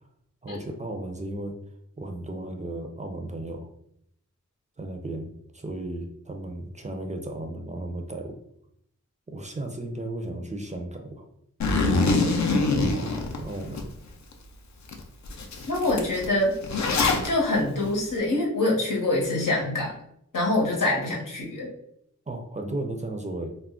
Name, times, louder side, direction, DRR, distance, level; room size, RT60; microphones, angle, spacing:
voice 1, 0.4-1.6 2.0-3.7 4.8-8.4 9.3-11.3 12.9-13.9 22.3-23.6, right 1 dB, 25° right, 3 dB, 0.4 m, -35 dB
Zipper (clothing), 11.6-13.8 14.3-14.4 14.9-15.0 15.3-17.3, left 3 dB, 65° left, 0.5 m, -24 dB
voice 2, 15.7-16.5 17.2-19.9 20.3-21.7, left 2 dB, 90° left, -3 dB, 0.9 m, -25 dB
2.3 x 2.0 x 3.6 m, 0.73 s
wide cardioid pair, 70°, 31 cm